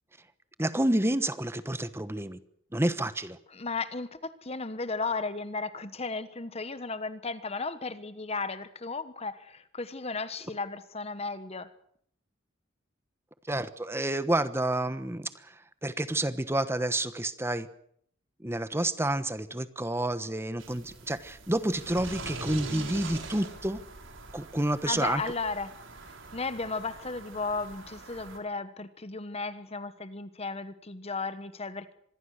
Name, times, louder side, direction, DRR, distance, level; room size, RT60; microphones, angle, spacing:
voice 1, 0.6-2.4 2.7-3.4 13.5-15.5 15.8-17.7 18.4-23.8 24.3-25.2, right 1 dB, 10° right, 13 dB, 1.2 m, -29 dB
voice 2, 3.5-11.7 24.9-25.7 26.3-31.9, left 3 dB, 30° left, 13 dB, 1.1 m, -35 dB
sound 1, 20.6-28.4, right 3 dB, 75° right, 4.5 m, -43 dB
26.0 x 21.5 x 6.5 m, 0.66 s
head